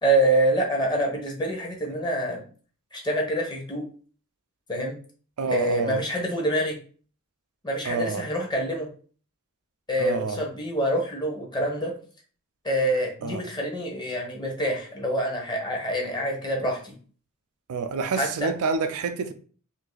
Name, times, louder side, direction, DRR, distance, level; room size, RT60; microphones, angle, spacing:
voice 1, 0.0-2.4 2.9-3.9 4.7-5.0 5.5-6.8 7.6-8.9 9.9-11.9 12.6-16.9 18.1-18.3, right 1 dB, 20° left, 0.8 m, -26 dB
voice 2, 5.4-6.0 7.9-8.3 10.0-10.4 13.2-13.4 17.7-19.3, right 4 dB, 85° right, 0.4 m, -28 dB
2.6 x 2.5 x 3.8 m
head